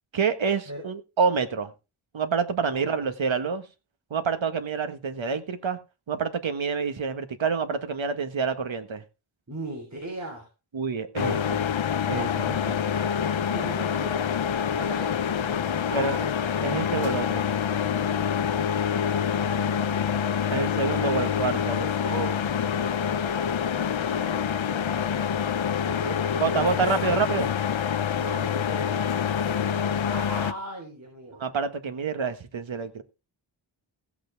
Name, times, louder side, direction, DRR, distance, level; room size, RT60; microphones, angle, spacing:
voice 1, 0.1-1.7 2.1-3.6 4.1-5.8 6.1-9.0 10.7-11.5 12.1-12.8 15.9-16.1 16.6-17.5 20.5-21.8 26.4-27.5 29.4-29.6 31.3-33.0, right 5 dB, 70° right, 1.6 m, -27 dB
voice 2, 2.7-3.1 9.5-10.5 11.2-11.5 12.1-12.4 13.5-14.3 14.7-16.3 18.2-18.8 21.1-21.4 21.7-22.4 24.1-25.0 25.9-27.2 28.1-31.4, right 1 dB, 35° right, 3.9 m, -39 dB
sound 1, 11.2-30.5, left 8 dB, 70° left, 0.9 m, -26 dB
16.0 x 8.5 x 3.5 m
wide cardioid pair, 115°, 47 cm